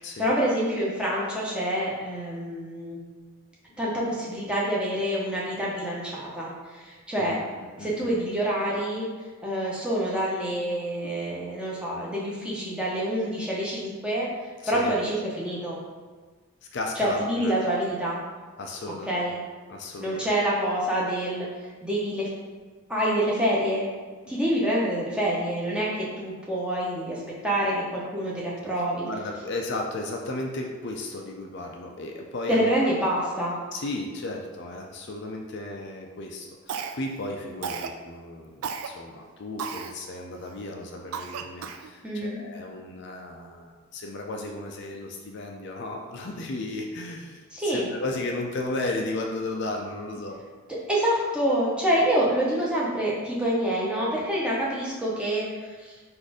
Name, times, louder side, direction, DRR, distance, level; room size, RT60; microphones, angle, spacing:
voice 1, 0.2-3.0 3.8-7.4 7.8-9.1 9.4-14.3 14.7-15.8 17.0-18.2 19.1-19.4 20.0-21.5 21.8-22.3 22.9-23.9 24.3-29.1 32.5-33.6 42.0-42.4 47.5-47.9 50.7-55.9, right 1 dB, 5° right, -6 dB, 0.8 m, -27 dB
voice 2, 7.8-8.1 11.0-11.1 14.6-14.9 16.7-17.7 18.6-19.3 19.7-20.3 24.3-24.4 29.0-32.7 33.7-50.4 52.6-52.7, left 2 dB, 50° left, 1 dB, 0.4 m, -34 dB
Cough, 36.7-37.2 37.6-38.0 38.6-38.9 39.6-39.9 40.5-40.6 41.1-41.9, right 6 dB, 75° right, 0.3 m, -33 dB
4.1 x 2.6 x 4.8 m, 1.4 s
head